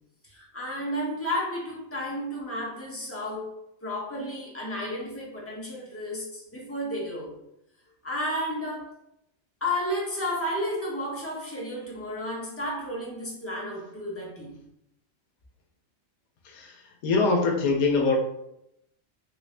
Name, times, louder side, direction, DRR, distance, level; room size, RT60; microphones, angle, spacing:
voice 1, 0.2-3.5 3.8-7.4 8.0-9.0 9.6-14.6, left 1 dB, 15° left, 0.5 m, -32 dB
voice 2, 16.4-16.8 17.0-18.2, left 3 dB, 90° left, 1.1 m, -23 dB
3.3 x 2.5 x 3.2 m
omnidirectional pair, 1.4 m